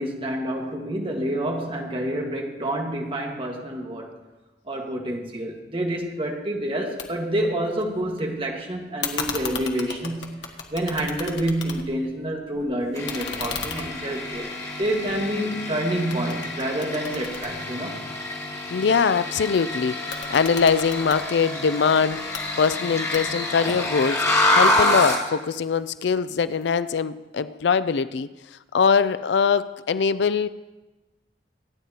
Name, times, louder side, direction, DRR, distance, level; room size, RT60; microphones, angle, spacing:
voice 1, 0.0-4.2 4.7-10.4 10.7-14.5 14.8-18.0, right 1 dB, 30° right, 1 dB, 1.7 m, -28 dB
sound 1, 7.0-7.1 7.4-8.2 9.0-12.1 12.4-15.7 16.1-18.3 19.9-21.2 22.1-22.4 23.1-23.6, left 6 dB, 90° left, 1.4 m, -35 dB
sound 2, 12.9-25.3, left 1 dB, 20° left, 1.9 m, -27 dB
voice 2, 18.7-22.2 22.6-24.2 24.5-28.3 28.7-30.5, left 6 dB, 70° left, 14 dB, 0.4 m, -22 dB
25.5 x 9.1 x 2.9 m, 1.1 s
head